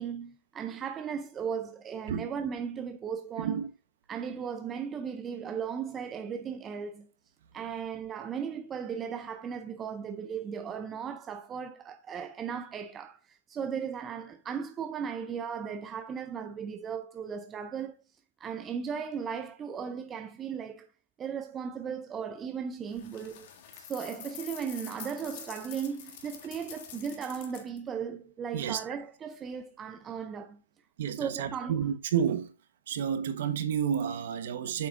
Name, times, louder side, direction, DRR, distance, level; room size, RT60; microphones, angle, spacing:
voice 1, 0.0-3.6 4.1-7.1 7.5-18.0 18.4-20.9 21.2-23.5 23.7-30.6 31.1-31.9, right 7 dB, 15° right, 0.5 m, -36 dB
voice 2, 3.4-3.7 28.5-28.8 31.0-32.5 32.9-34.9, right 8 dB, 50° right, 1.1 m, -30 dB
sound 1, 22.9-27.8, left 8 dB, 40° left, 1.8 m, -46 dB
8.1 x 5.7 x 2.5 m
hypercardioid pair, 150°, 0 cm